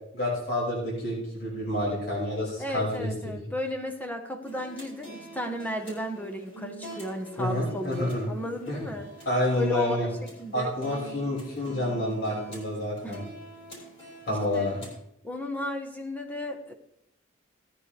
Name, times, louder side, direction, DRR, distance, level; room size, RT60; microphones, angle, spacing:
voice 1, 0.1-3.1 7.4-8.2 8.7-8.8 9.3-10.1 10.5-13.2 14.3-14.8, left 1 dB, 55° left, -5 dB, 5.9 m, -29 dB
voice 2, 2.6-9.1 9.6-10.7 13.0-13.2 14.3-14.7 15.2-16.7, left 1 dB, 10° left, 4 dB, 1.3 m, -34 dB
sound 1, 4.4-15.0, right 2 dB, 30° left, 4.3 m, -45 dB
17.5 x 9.6 x 3.4 m, 0.76 s
head